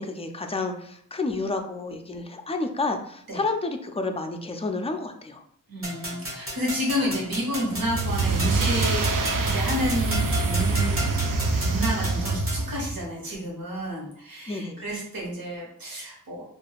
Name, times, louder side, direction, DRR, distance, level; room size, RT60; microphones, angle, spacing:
voice 1, 0.0-5.4 14.5-14.9, left 3 dB, 20° left, 5 dB, 0.3 m, -30 dB
voice 2, 5.7-9.1 9.4-16.4, equal, 80° right, -3 dB, 1.1 m, -30 dB
sound 1, 5.8-12.7, equal, 40° right, 1.1 m, -34 dB
sound 2, 7.7-13.0, right 3 dB, 65° right, 0.5 m, -25 dB
3.2 x 2.4 x 2.3 m, 0.67 s
wide cardioid pair, 70°, 35 cm